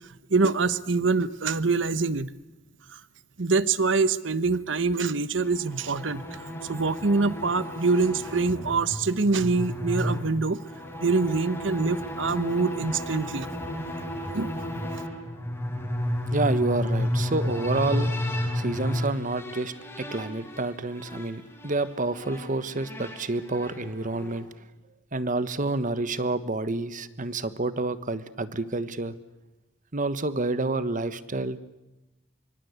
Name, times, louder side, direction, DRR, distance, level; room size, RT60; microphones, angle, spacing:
voice 1, 0.3-2.3 2.9-3.0 3.4-10.6 11.0-13.5 14.3-14.5, right 4 dB, 70° right, 15 dB, 1.1 m, -25 dB
sound 1, 5.4-24.5, left 1 dB, 15° left, 5.6 m, -32 dB
voice 2, 16.3-18.1 18.5-24.5 25.1-29.1 29.9-31.6, right 2 dB, 45° right, 13 dB, 1.4 m, -29 dB
25.5 x 24.5 x 8.3 m, 1.0 s
head